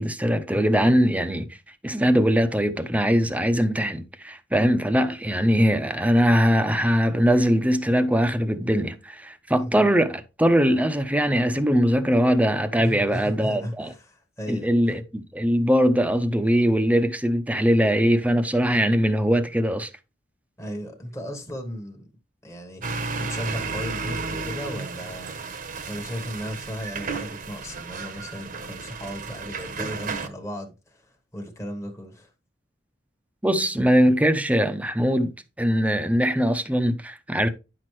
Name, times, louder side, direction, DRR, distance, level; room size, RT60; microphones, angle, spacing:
voice 1, 0.0-1.6 1.8-13.9 14.5-19.9 33.4-37.5, equal, 10° right, 0.7 m, -21 dB
voice 2, 9.6-9.9 12.8-15.0 20.6-22.1 22.4-23.0 23.3-25.4 25.9-32.3, equal, 15° left, 1.3 m, -35 dB
sound 1, 22.8-30.3, right 4 dB, 50° right, 1.0 m, -33 dB
9.9 x 6.1 x 3.1 m
head